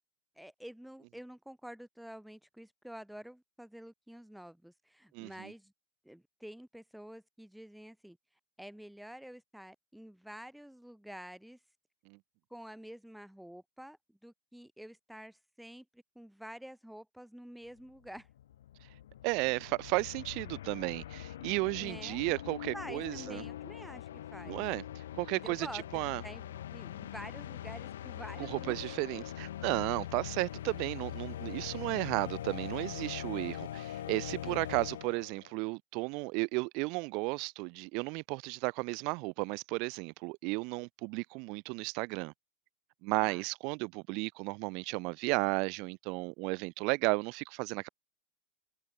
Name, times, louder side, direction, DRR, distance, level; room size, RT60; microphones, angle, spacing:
voice 1, 0.4-5.7 6.0-8.2 8.6-11.6 12.5-18.3 21.8-22.3 22.7-24.6 25.3-28.8 34.4-34.5 43.2-43.4, equal, ahead, 6.3 m, -49 dB
voice 2, 5.1-5.5 12.1-12.2 19.2-23.4 24.5-24.8 25.1-25.7 25.9-26.2 28.4-42.3 43.0-47.9, right 30 dB, 55° right, 6.0 m, -34 dB
sound 1, 17.8-17.9 18.1-35.5, left 11 dB, 80° left, 5.8 m, -42 dB
hypercardioid pair, 105°, 0 cm